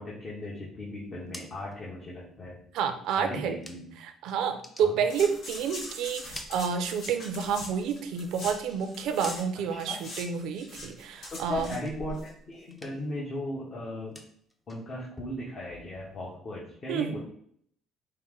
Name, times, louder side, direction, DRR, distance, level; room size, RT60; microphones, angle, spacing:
voice 1, 0.0-2.6 3.1-3.9 4.8-5.0 9.7-10.0 11.3-14.2 14.7-17.2, left 1 dB, 40° left, -5 dB, 1.2 m, -37 dB
sound 1, 1.0-4.1 4.4-5.8 6.1-7.4 7.7-9.9 10.2-10.7 11.0-12.4 12.6-13.2 13.5-16.4, left 1 dB, 15° left, 0.6 m, -51 dB
voice 2, 2.7-3.6 4.0-11.8 16.9-17.2, right 7 dB, 75° right, 7 dB, 0.5 m, -29 dB
sound 2, 5.1-9.4 9.7-12.3 12.5-12.6, left 1 dB, 70° left, 1.6 m, -42 dB
5.3 x 2.1 x 3.8 m, 0.64 s
cardioid pair, 100°, 0 cm